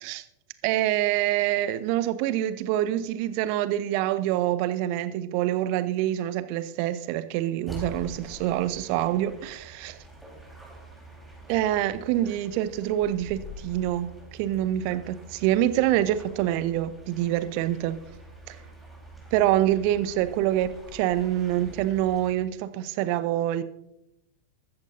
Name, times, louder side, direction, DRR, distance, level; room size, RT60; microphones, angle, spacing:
voice 1, 0.6-10.0 11.5-14.1 14.4-18.0 18.5-18.6 19.3-23.6, right 13 dB, 45° right, 14 dB, 0.7 m, -26 dB
sound 1, 7.7-22.3, equal, 5° right, 4.2 m, -46 dB
14.5 x 13.5 x 2.7 m, 0.82 s
figure-of-eight pair, 90°, 0 cm